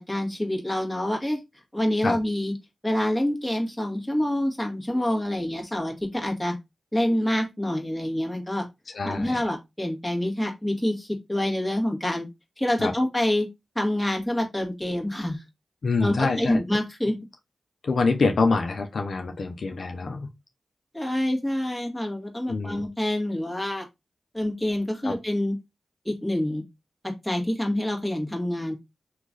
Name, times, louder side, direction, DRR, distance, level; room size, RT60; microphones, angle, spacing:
voice 1, 0.1-1.4 1.7-2.5 2.8-6.5 6.9-8.6 9.0-12.3 12.6-13.5 13.7-15.4 16.0-17.1 20.9-23.8 24.3-25.5 26.0-26.6 27.0-28.7, left 1 dB, 5° left, 1.4 m, -26 dB
voice 2, 8.9-9.4 12.8-12.9 15.8-16.6 17.8-20.3 22.5-22.8 25.0-25.1, left 4 dB, 65° left, 0.6 m, -25 dB
3.0 x 2.4 x 3.9 m
cardioid pair, 55°, 0 cm